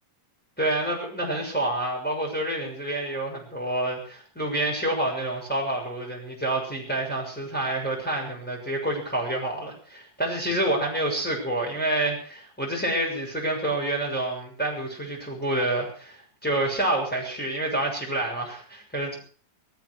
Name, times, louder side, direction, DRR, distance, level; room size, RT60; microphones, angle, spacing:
voice 1, 0.6-16.2 16.4-19.2, right 1 dB, ahead, -2 dB, 6.3 m, -28 dB
19.0 x 14.0 x 4.8 m, 0.41 s
omnidirectional pair, 4.2 m